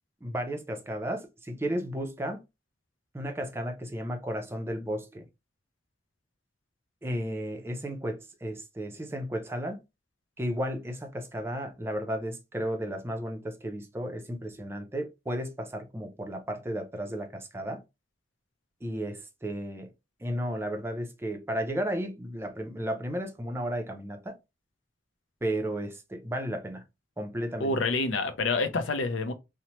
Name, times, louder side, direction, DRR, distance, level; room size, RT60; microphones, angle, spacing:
voice 1, 0.2-2.4 3.1-5.3 7.0-9.8 10.4-17.8 18.8-19.9 20.2-24.4 25.4-26.8 27.2-27.7, equal, 15° right, 0.4 m, -33 dB
voice 2, 27.6-29.3, left 3 dB, 90° left, 0.5 m, -27 dB
2.9 x 2.0 x 2.9 m
head